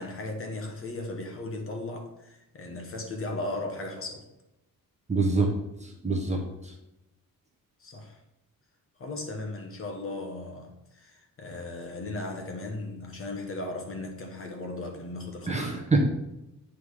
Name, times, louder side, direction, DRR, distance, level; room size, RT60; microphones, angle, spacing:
voice 1, 0.0-4.2 7.8-8.2 9.0-15.8, left 2 dB, 35° left, 2 dB, 1.2 m, -37 dB
voice 2, 5.1-5.5 5.8-6.7 15.5-16.0, right 3 dB, 20° right, 1 dB, 1.0 m, -26 dB
8.5 x 3.7 x 4.8 m, 0.91 s
wide cardioid pair, 160°, 36 cm